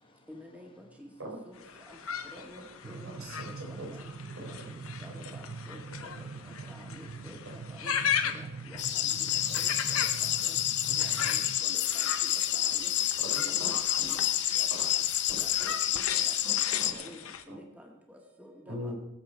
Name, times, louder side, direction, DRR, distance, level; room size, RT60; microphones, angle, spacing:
voice 1, 0.3-1.1 1.4-2.0 2.3-3.3 3.7-4.1 4.5-4.7 5.0-5.8 6.2-6.3 6.7-7.9 8.3-9.2 9.5-10.1 10.4-10.6 11.0-12.9 13.6-13.7 14.0-14.3 14.6-15.0 15.3-17.2 17.5-18.9, left 1 dB, 5° right, 1.8 m, -50 dB
sound 1, 1.6-17.4, left 7 dB, 80° left, 1.0 m, -38 dB
voice 2, 1.8-2.3 3.5-5.1 5.6-7.2 8.4-10.3, left 2 dB, 25° left, 1.6 m, -62 dB
sound 2, 2.8-11.6, right 5 dB, 50° right, 0.4 m, -43 dB
voice 3, 2.9-3.9 4.6-4.7 13.2-14.1 14.7-14.8 16.4-17.0 17.5-17.6 18.7-18.9, equal, 80° right, 4.6 m, -41 dB
sound 3, 8.8-16.9, left 11 dB, 55° left, 0.8 m, -29 dB
21.0 x 7.8 x 4.5 m
head